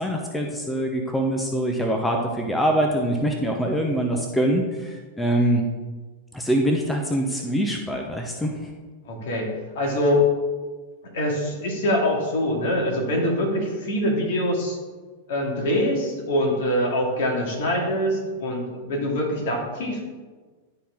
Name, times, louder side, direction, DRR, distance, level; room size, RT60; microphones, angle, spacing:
voice 1, 0.0-5.6 6.3-8.7, right 1 dB, 10° left, 2 dB, 0.9 m, -24 dB
voice 2, 9.1-10.3 11.1-14.8 15.3-20.1, left 1 dB, 60° left, 0 dB, 2.2 m, -24 dB
11.5 x 4.2 x 3.7 m, 1.4 s
figure-of-eight pair, 95°, 0 cm